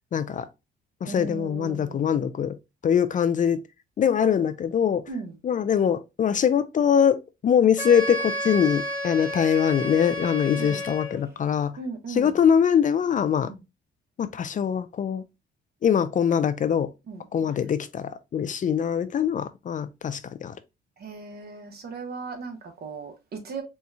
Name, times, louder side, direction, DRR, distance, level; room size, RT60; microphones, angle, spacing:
voice 1, 0.1-0.5 1.0-2.6 2.8-3.6 4.0-5.0 5.4-11.8 12.1-13.5 14.2-15.2 15.8-16.9 17.3-20.6, left 8 dB, 40° left, 0.4 m, -23 dB
voice 2, 1.0-2.1 5.1-5.3 10.5-10.8 11.8-12.3 13.4-13.6 17.1-17.5 21.0-23.6, right 4 dB, 55° right, 1.1 m, -37 dB
Wind instrument woodwind instrument, 7.8-11.3, equal, 10° right, 1.0 m, -31 dB
4.3 x 2.3 x 2.6 m
cardioid pair, 90°, 20 cm